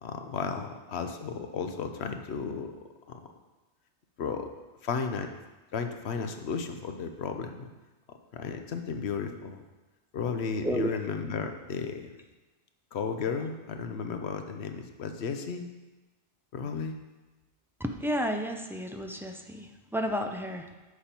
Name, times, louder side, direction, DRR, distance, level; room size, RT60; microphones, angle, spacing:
voice 1, 0.0-2.7 3.1-3.2 4.2-4.5 4.8-5.3 5.7-7.7 8.3-9.6 10.1-12.2 12.9-15.7 16.5-17.0, left 5 dB, 80° left, 6 dB, 1.0 m, -34 dB
voice 2, 10.6-11.0 17.8-20.8, equal, 5° right, 4 dB, 0.4 m, -32 dB
9.5 x 7.0 x 4.4 m, 1.2 s
omnidirectional pair, 1.1 m